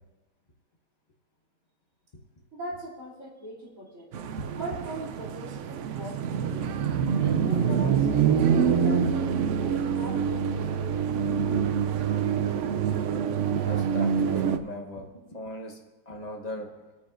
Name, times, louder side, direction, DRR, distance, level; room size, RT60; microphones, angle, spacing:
voice 1, 2.5-4.1 4.5-6.7 7.2-9.3 9.6-10.8, right 1 dB, 50° right, -7 dB, 3.4 m, -40 dB
sound 1, 4.1-14.6, right 7 dB, 85° right, 0.6 m, -26 dB
sound 2, 7.2-12.3, right 1 dB, 65° right, 2.0 m, -37 dB
voice 2, 11.3-11.6 13.7-16.7, left 1 dB, 30° left, 2 dB, 1.0 m, -38 dB
20.5 x 9.7 x 2.6 m, 1.1 s
omnidirectional pair, 1.9 m